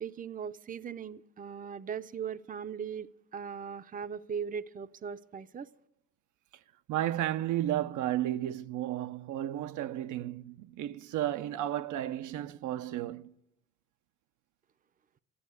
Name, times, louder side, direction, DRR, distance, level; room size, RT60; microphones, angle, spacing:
voice 1, 0.0-5.7, right 7 dB, 30° right, 0.5 m, -39 dB
voice 2, 6.9-13.3, right 13 dB, 80° right, 0.6 m, -33 dB
13.5 x 10.0 x 9.4 m
cardioid pair, 90°, 30 cm